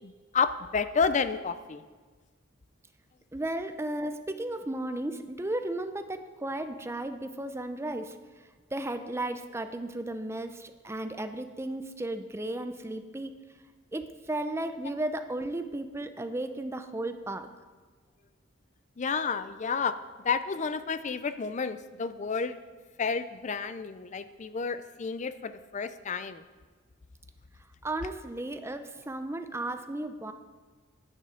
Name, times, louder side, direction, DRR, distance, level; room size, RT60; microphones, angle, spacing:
voice 1, 0.0-1.8 14.7-14.8 19.0-20.0 20.2-22.6 23.0-26.4, left 5 dB, 35° left, 12 dB, 0.5 m, -30 dB
voice 2, 3.3-13.4 13.9-17.5 27.8-30.3, right 1 dB, 15° right, 8 dB, 0.6 m, -34 dB
9.7 x 9.3 x 5.1 m, 1.4 s
head